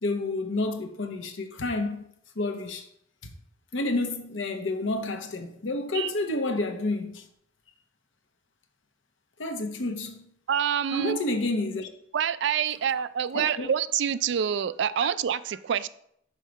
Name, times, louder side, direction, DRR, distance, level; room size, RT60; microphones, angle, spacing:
voice 1, 0.0-2.1 2.4-2.9 3.7-7.3 9.4-10.2 10.9-11.9 13.3-13.7, left 2 dB, 75° left, 1.0 m, -29 dB
voice 2, 10.5-11.2 12.1-15.9, right 8 dB, 60° right, 0.4 m, -27 dB
5.5 x 4.6 x 6.4 m
head